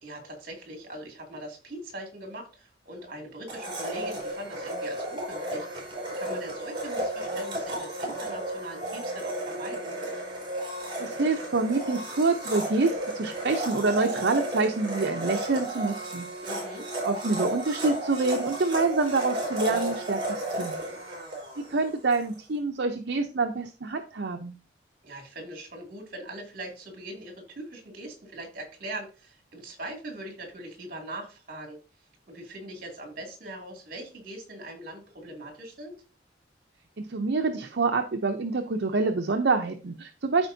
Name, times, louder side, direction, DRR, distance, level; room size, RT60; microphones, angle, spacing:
voice 1, 0.0-9.9 16.4-16.9 25.0-31.8 32.3-36.0, right 1 dB, 50° right, 2 dB, 2.5 m, -41 dB
Domestic sounds home sounds, 3.5-22.3, right 1 dB, 30° right, 4.4 m, -33 dB
voice 2, 11.0-16.3 17.0-20.8 21.6-24.5 37.0-40.5, right 3 dB, 70° right, 5 dB, 0.7 m, -27 dB
13.5 x 4.5 x 2.7 m, 0.35 s
head